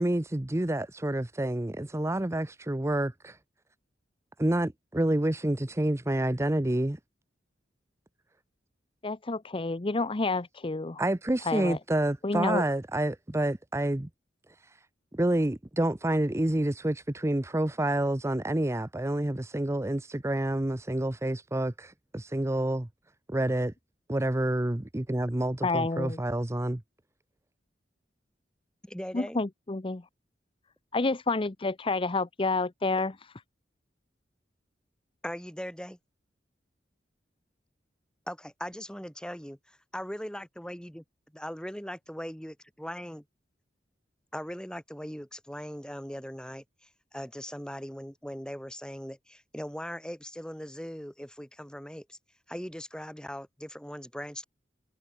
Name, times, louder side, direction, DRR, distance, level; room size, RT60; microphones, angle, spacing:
voice 1, 0.0-3.4 4.4-7.0 11.0-14.1 14.6-14.8 15.1-22.9 23.3-23.7 24.1-26.8, right 1 dB, 15° right, 0.7 m, -28 dB
voice 2, 9.0-11.0 11.5-11.8 12.2-12.6 25.6-26.2 29.1-30.0 30.9-33.3, left 3 dB, 30° left, 0.7 m, -29 dB
voice 3, 28.8-29.4 35.2-36.0 38.3-41.0 41.3-43.2 44.3-52.2 52.5-54.4, equal, 5° left, 6.5 m, -40 dB
head